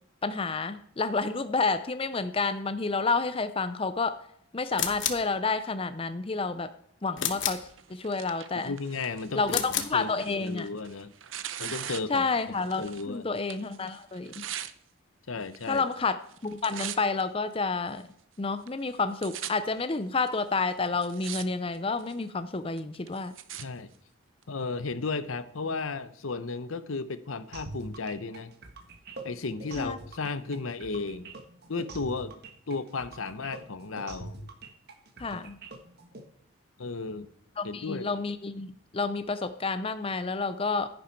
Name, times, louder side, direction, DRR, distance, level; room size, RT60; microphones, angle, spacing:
voice 1, 0.2-4.1 4.5-6.7 7.0-8.7 9.3-10.7 12.1-14.4 15.7-16.2 16.4-18.0 18.4-23.3 29.8-30.0 35.2-35.6 37.6-40.9, left 4 dB, 25° left, 11 dB, 0.5 m, -29 dB
sound 1, 4.7-5.3 7.2-7.7 9.4-10.0, left 9 dB, 60° left, 1.1 m, -30 dB
Tearing, 7.6-13.1 13.4-14.7 15.5-16.0 16.3-17.2 17.9-18.0 18.7-18.8 18.9-19.5 20.3-20.4 20.9-21.4 21.7-22.2 22.8-23.6 24.4-24.5, right 11 dB, 65° right, 0.7 m, -41 dB
voice 2, 8.6-9.4 9.7-11.1 11.6-13.3 15.3-15.8 23.6-23.9 24.5-28.5 29.2-31.3 31.7-32.3 32.7-34.4 35.3-35.4 36.8-37.3 37.6-38.2, left 4 dB, 75° left, 14 dB, 0.8 m, -34 dB
sound 2, 27.5-36.2, right 3 dB, 50° right, 1.5 m, -44 dB
10.5 x 10.0 x 4.5 m, 0.67 s
head